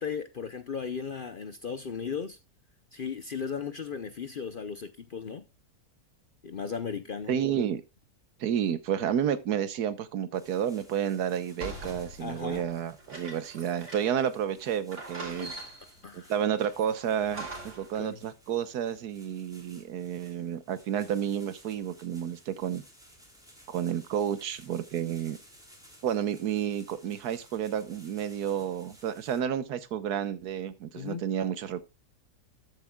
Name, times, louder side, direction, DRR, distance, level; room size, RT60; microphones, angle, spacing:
voice 1, 0.0-2.4 2.9-5.4 6.4-7.4 12.2-12.7 15.4-15.5 16.0-16.3 17.9-18.2 30.9-31.2, left 6 dB, 50° left, 0.6 m, -36 dB
voice 2, 7.3-7.8 8.4-15.5 16.1-22.8 23.7-25.4 26.0-31.8, right 9 dB, 90° right, 1.4 m, -31 dB
sound 1, 10.3-29.4, equal, ahead, 3.2 m, -57 dB
sound 2, 11.6-14.3 14.6-14.7 14.9-16.0 16.6-17.9, right 2 dB, 50° right, 3.1 m, -42 dB
13.5 x 8.2 x 2.3 m
omnidirectional pair, 1.6 m